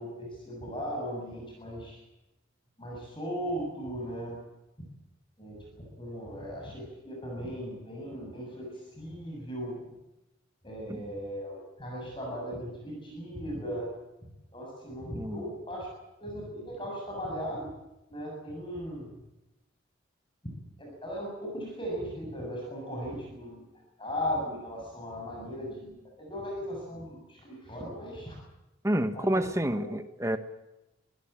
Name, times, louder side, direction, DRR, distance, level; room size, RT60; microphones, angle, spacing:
voice 1, 0.0-2.0 2.8-4.4 5.4-10.0 10.6-13.9 14.5-15.9 16.2-17.7 18.1-19.2 20.4-23.6 24.0-28.4 29.1-29.5 29.8-29.9, equal, 25° left, -1 dB, 7.2 m, -37 dB
voice 2, 28.8-30.4, right 1 dB, 15° right, 9 dB, 1.4 m, -29 dB
24.5 x 16.5 x 8.9 m, 0.95 s
head